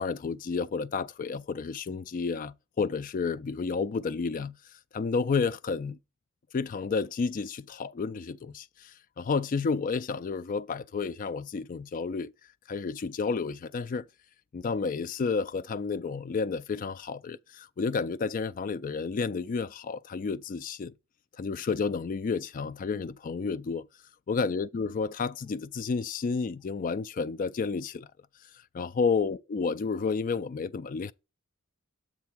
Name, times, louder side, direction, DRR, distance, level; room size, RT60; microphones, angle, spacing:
voice 1, 0.0-4.6 4.9-6.0 6.5-12.3 12.7-14.1 14.5-20.9 21.4-23.9 24.3-28.1 28.7-31.1, left 5 dB, 40° left, 0.3 m, -31 dB
7.4 x 3.4 x 5.8 m
head